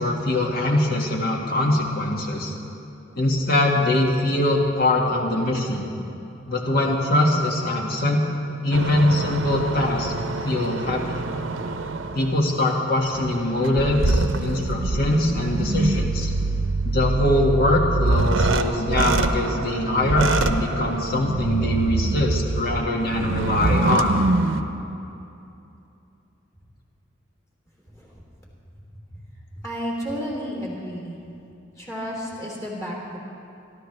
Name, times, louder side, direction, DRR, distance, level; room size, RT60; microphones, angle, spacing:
voice 1, 0.0-2.5 3.2-5.9 6.5-8.2 8.6-10.1 10.4-11.2 12.1-16.3 16.8-24.1, left 1 dB, 50° left, -1 dB, 1.9 m, -22 dB
sound 1, 8.7-12.4 13.0-24.6, right 2 dB, 80° right, 0.7 m, -25 dB
voice 2, 29.6-31.2 31.8-33.2, equal, 15° left, -4 dB, 3.2 m, -32 dB
25.5 x 13.0 x 3.3 m, 2.7 s
head